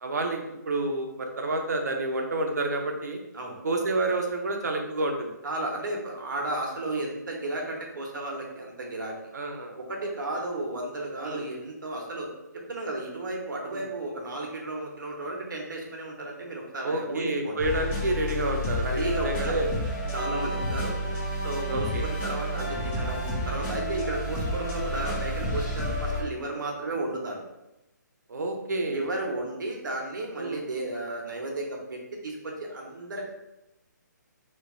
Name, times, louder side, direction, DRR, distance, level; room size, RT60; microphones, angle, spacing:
voice 1, 0.0-3.2 3.6-5.3 6.9-7.1 9.3-9.7 11.2-11.4 13.7-13.9 16.8-19.7 20.2-20.5 21.7-22.1 28.3-29.1 30.4-30.6, right 2 dB, 60° right, 3 dB, 0.6 m, -29 dB
voice 2, 5.4-9.2 9.8-17.6 18.8-19.6 20.1-21.0 21.4-27.4 28.9-33.2, right 2 dB, 80° right, 0 dB, 1.0 m, -33 dB
sound 1, 17.6-26.2, equal, 10° left, 0.5 m, -30 dB
3.1 x 2.3 x 3.6 m, 0.93 s
hypercardioid pair, 170°, 10 cm